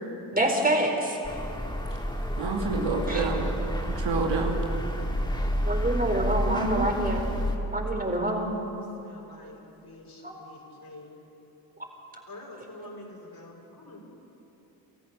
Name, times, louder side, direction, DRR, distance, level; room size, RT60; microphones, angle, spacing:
voice 1, 0.3-1.2 3.1-3.3 5.6-7.2 7.7-8.5 10.2-10.4 12.8-12.9, right 1 dB, 15° right, 2 dB, 4.5 m, -27 dB
sound 1, 1.2-7.6, equal, 10° left, 2.8 m, -29 dB
voice 2, 2.4-3.5 4.0-4.6 6.5-7.1, right 3 dB, 60° right, 1 dB, 2.7 m, -28 dB
voice 3, 8.6-11.2 12.3-14.0, left 2 dB, 45° left, -1 dB, 6.2 m, -47 dB
29.5 x 14.0 x 6.8 m, 2.9 s
hypercardioid pair, 45°, 49 cm